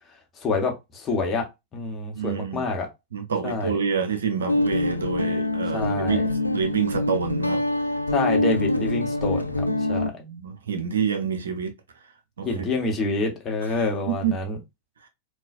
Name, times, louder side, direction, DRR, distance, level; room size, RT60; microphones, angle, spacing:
voice 1, 0.4-1.5 1.7-2.9 3.4-3.7 5.7-6.2 8.1-10.1 12.4-14.6, left 3 dB, 25° left, 1.1 m, -27 dB
voice 2, 2.1-2.7 3.1-8.0 10.0-11.7 12.4-12.7 14.1-14.3, right 6 dB, 70° right, 0.6 m, -28 dB
Guitar, 4.5-10.1, left 1 dB, 85° left, 0.3 m, -25 dB
3.9 x 2.3 x 2.4 m
figure-of-eight pair, 90°, 0 cm